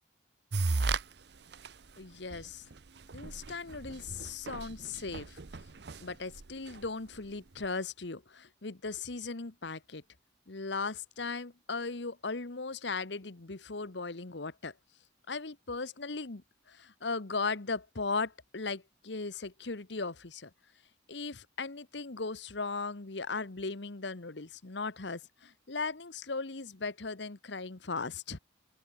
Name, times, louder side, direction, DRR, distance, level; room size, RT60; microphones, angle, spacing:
sound 1, 0.5-1.0 1.5-1.7 2.3-2.4 2.7-2.8 3.1-6.8, right 3 dB, 60° right, 0.8 m, -34 dB
voice 1, 2.0-2.6 3.1-5.4 6.0-10.0 10.5-14.7 15.3-16.4 16.7-20.5 21.1-28.4, left 4 dB, 70° left, 1.2 m, -37 dB
open air
head